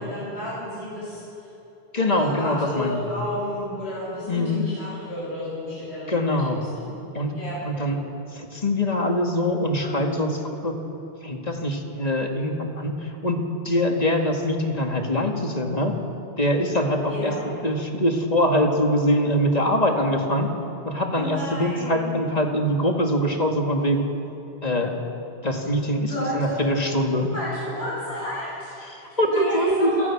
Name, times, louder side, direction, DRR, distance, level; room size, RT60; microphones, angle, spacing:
voice 1, 0.0-1.5 2.0-6.9 7.3-7.6 17.1-17.4 21.1-22.1 26.1-26.6 27.3-30.1, left 1 dB, 85° left, -8 dB, 7.0 m, -32 dB
voice 2, 1.9-3.1 4.3-4.6 6.1-6.6 7.1-7.3 7.6-8.0 8.3-10.7 11.2-13.4 13.6-15.9 16.4-20.5 20.8-24.1 24.6-24.9 25.4-27.3 28.8-30.1, left 1 dB, 40° left, 2 dB, 2.2 m, -23 dB
27.5 x 17.0 x 6.1 m, 2.9 s
omnidirectional pair, 1.1 m